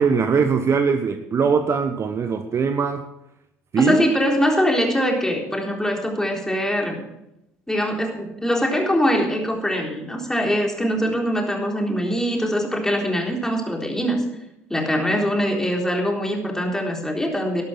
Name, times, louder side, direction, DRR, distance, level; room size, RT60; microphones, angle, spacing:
voice 1, 0.0-3.0 3.7-4.0, right 5 dB, 40° right, 8 dB, 1.1 m, -21 dB
voice 2, 3.8-7.0 7.7-14.2 14.7-17.6, equal, 5° left, 1 dB, 3.9 m, -22 dB
12.5 x 11.5 x 6.0 m, 0.84 s
hypercardioid pair, 65°, 7 cm